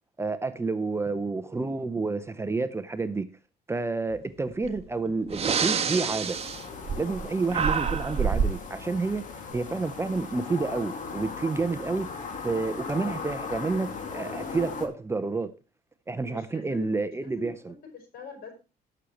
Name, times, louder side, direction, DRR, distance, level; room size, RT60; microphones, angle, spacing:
voice 1, 0.2-3.3 3.7-6.4 7.0-9.3 9.5-12.1 12.4-15.5 16.1-17.7, right 3 dB, 15° right, 0.7 m, -29 dB
Breathing, 4.6-4.8 5.3-7.2 7.5-8.6, right 6 dB, 35° right, 1.5 m, -27 dB
sound 1, 6.0-14.9, left 5 dB, 50° left, 2.1 m, -38 dB
voice 2, 16.3-16.9 17.2-18.5, left 6 dB, 65° left, 4.9 m, -43 dB
18.5 x 6.4 x 3.0 m
cardioid pair, 110°, 17 cm